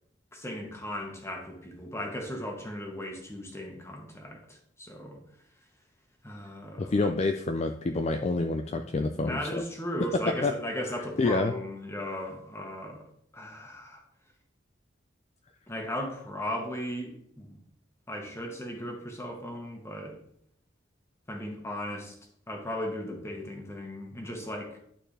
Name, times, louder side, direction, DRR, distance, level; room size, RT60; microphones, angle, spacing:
voice 1, 0.3-5.2 6.2-7.1 9.3-14.0 15.7-17.6 18.1-20.2 21.3-22.2 22.5-24.8, equal, 15° left, 1 dB, 1.4 m, -37 dB
voice 2, 6.8-9.6 10.4-10.5 11.2-11.5, left 3 dB, 35° left, 6 dB, 0.4 m, -27 dB
11.0 x 4.4 x 3.3 m, 0.69 s
head